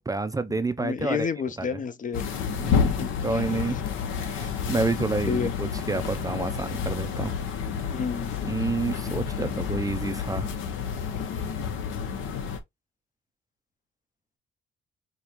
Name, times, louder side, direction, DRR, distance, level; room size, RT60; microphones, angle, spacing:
voice 1, 0.0-1.3 1.6-1.7 2.6-3.8 4.2-7.3 8.4-10.5, right 3 dB, 15° right, 0.4 m, -29 dB
voice 2, 0.8-2.2 2.8-3.8 5.3-5.5 7.9-8.4, left 6 dB, 40° left, 0.6 m, -31 dB
sound 1, 2.1-12.6, left 6 dB, 85° left, 1.0 m, -30 dB
4.9 x 2.3 x 3.0 m
cardioid pair, 90°, 20 cm